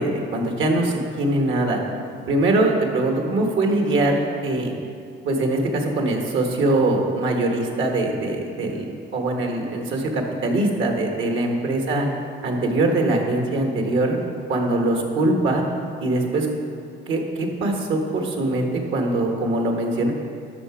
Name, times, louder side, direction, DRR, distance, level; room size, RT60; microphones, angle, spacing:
voice 1, 0.0-1.8 2.3-4.7 5.2-12.1 12.4-14.2 14.5-15.6 16.0-16.5 17.1-20.1, right 2 dB, 75° right, 2 dB, 1.6 m, -22 dB
12.0 x 6.1 x 4.9 m, 2.4 s
cardioid pair, 90°, 20 cm